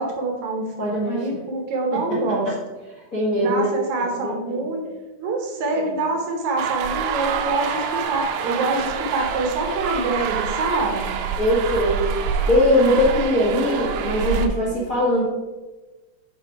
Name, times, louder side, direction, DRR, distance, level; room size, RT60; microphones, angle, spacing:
voice 1, 0.0-2.5 3.4-4.8 5.2-11.1 12.8-13.0, right 3 dB, 70° right, 2 dB, 2.2 m, -25 dB
voice 2, 0.8-1.3 3.1-3.7 4.1-4.7 11.4-15.2, left 1 dB, 40° left, -7 dB, 1.2 m, -21 dB
sound 1, 6.6-14.5, right 7 dB, 85° right, 2.3 m, -26 dB
6.9 x 5.1 x 4.6 m, 1.2 s
omnidirectional pair, 3.8 m